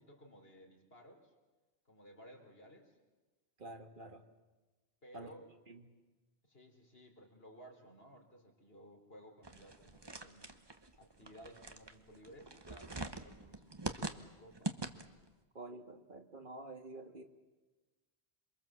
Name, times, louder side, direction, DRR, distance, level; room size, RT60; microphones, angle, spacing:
voice 1, 0.1-1.3 1.9-2.9 5.0-5.5 6.4-10.6 11.0-14.8, equal, 65° left, 2 dB, 3.9 m, -57 dB
voice 2, 3.6-4.3 5.1-5.3 5.7-5.9 15.5-17.2, right 2 dB, 50° right, 5 dB, 1.8 m, -49 dB
sound 1, 9.4-15.3, right 2 dB, 25° right, 1.1 m, -44 dB
27.5 x 23.0 x 7.4 m, 1.2 s
omnidirectional pair, 1.1 m